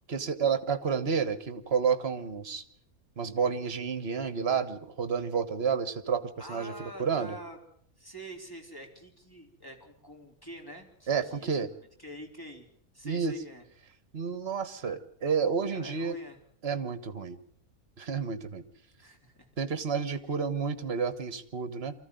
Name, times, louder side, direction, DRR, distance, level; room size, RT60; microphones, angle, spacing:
voice 1, 0.1-2.6 3.2-6.2 6.5-7.4 11.1-11.7 13.0-13.4 14.1-16.2 16.6-17.4 18.0-18.6 19.6-21.9, right 6 dB, 45° right, 12 dB, 1.6 m, -30 dB
voice 2, 6.4-7.6 8.0-11.6 12.0-12.7 12.9-13.6 15.7-16.4 19.0-19.5, equal, 15° left, 1 dB, 3.6 m, -46 dB
24.5 x 14.5 x 9.3 m, 0.68 s
omnidirectional pair, 1.6 m